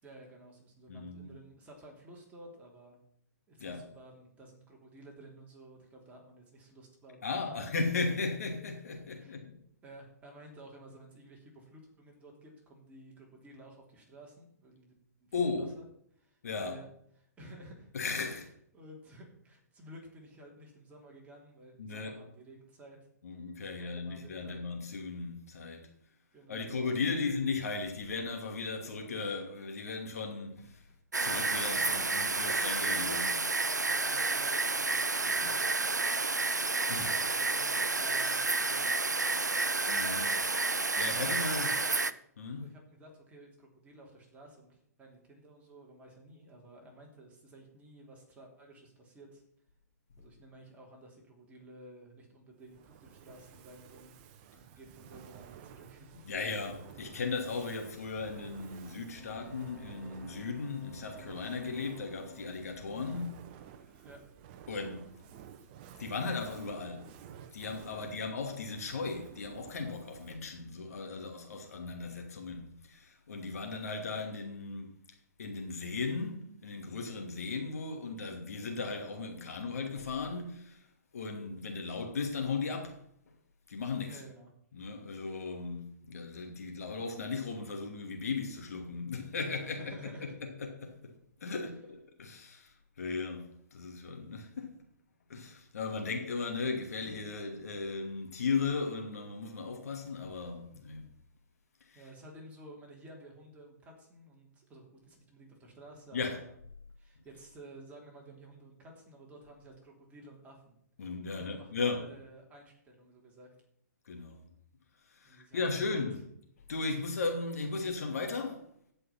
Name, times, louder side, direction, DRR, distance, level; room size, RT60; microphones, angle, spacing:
voice 1, 0.0-3.0 3.5-7.4 9.2-9.4 9.8-15.8 16.1-16.9 17.1-17.9 18.7-23.0 23.8-24.6 26.3-27.2 30.9-31.0 31.7-33.4 33.8-35.6 36.9-39.8 41.1-42.0 42.6-49.4 50.2-56.2 62.9-63.3 64.0-64.2 68.0-68.1 84.1-84.5 89.6-90.3 101.9-106.6 107.0-110.8 111.3-113.5 115.2-116.1, right 1 dB, 15° right, 3.1 m, -53 dB
voice 2, 0.9-1.3 3.6-3.8 7.2-9.6 15.3-15.7 16.4-16.8 17.9-18.5 21.8-22.2 23.2-25.8 26.5-30.8 31.2-33.3 36.9-37.1 39.9-41.7 42.4-42.7 56.2-63.3 64.7-65.1 66.0-67.1 67.5-74.9 75.4-80.8 81.1-83.0 83.7-84.2 84.7-94.7 95.3-101.1 101.9-102.0 106.1-106.4 111.0-112.0 114.1-114.4 115.1-116.2 116.7-118.6, left 4 dB, 60° left, 2.7 m, -36 dB
sound 1, 31.1-42.1, right 3 dB, 85° right, 0.6 m, -30 dB
Fire, 52.6-70.5, right 9 dB, 35° right, 0.9 m, -53 dB
Boat Horn, 59.0-64.1 66.9-67.0, equal, 15° left, 4.5 m, -54 dB
16.5 x 5.6 x 5.9 m
figure-of-eight pair, 120°, 9 cm